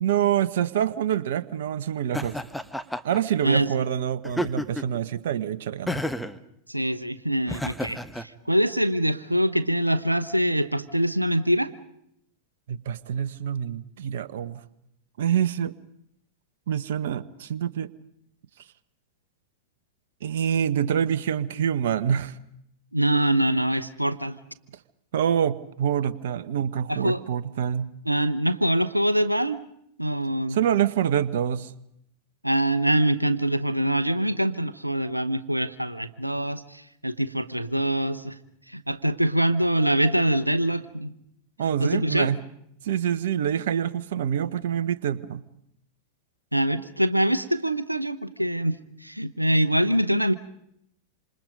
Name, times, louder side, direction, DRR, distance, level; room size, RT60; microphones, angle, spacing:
voice 1, 0.0-2.4 3.0-6.0 12.7-14.6 15.2-15.7 16.7-17.9 20.2-22.4 25.1-27.9 30.5-31.7 41.6-42.4 42.8-45.4, right 9 dB, 60° right, 16 dB, 1.0 m, -26 dB
Laughter, 2.1-3.2 4.2-5.0 5.9-6.4 7.5-8.2, equal, ahead, 1.3 m, -30 dB
voice 2, 3.4-3.8 6.7-11.7 22.9-24.4 26.9-27.2 28.1-29.6 30.0-30.6 32.4-38.4 38.7-41.1 41.8-42.3 46.5-50.3, right 1 dB, 90° right, 13 dB, 0.9 m, -24 dB
27.5 x 27.0 x 5.3 m, 0.76 s
figure-of-eight pair, 90°, 0 cm